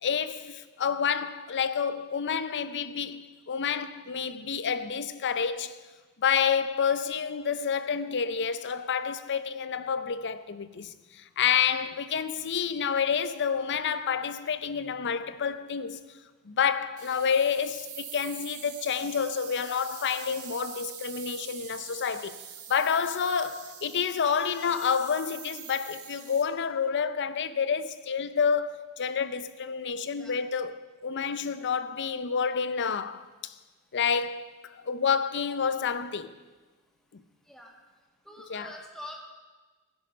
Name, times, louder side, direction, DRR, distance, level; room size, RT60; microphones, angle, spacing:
voice 1, 0.0-5.8 6.2-16.0 16.4-22.4 22.7-33.6 33.9-36.3 37.1-37.2 38.5-38.7, left 6 dB, 55° left, 0.6 m, -29 dB
sound 1, 17.0-26.4, right 9 dB, 75° right, 1.7 m, -44 dB
voice 2, 30.0-30.3 37.5-37.7 38.2-39.2, left 1 dB, ahead, 2.2 m, -45 dB
16.0 x 10.5 x 5.6 m
head